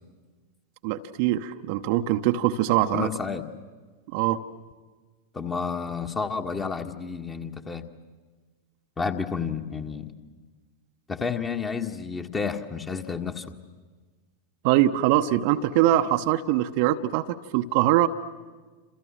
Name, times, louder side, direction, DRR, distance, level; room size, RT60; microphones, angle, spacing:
voice 1, 0.8-3.1 4.1-4.4 14.6-17.2 17.5-18.1, right 13 dB, 45° right, 7 dB, 0.9 m, -22 dB
voice 2, 2.9-3.4 5.3-7.9 9.0-10.1 11.1-13.5, left 5 dB, 15° left, 6 dB, 1.7 m, -30 dB
29.0 x 27.5 x 7.6 m, 1.4 s
figure-of-eight pair, 90°, 0 cm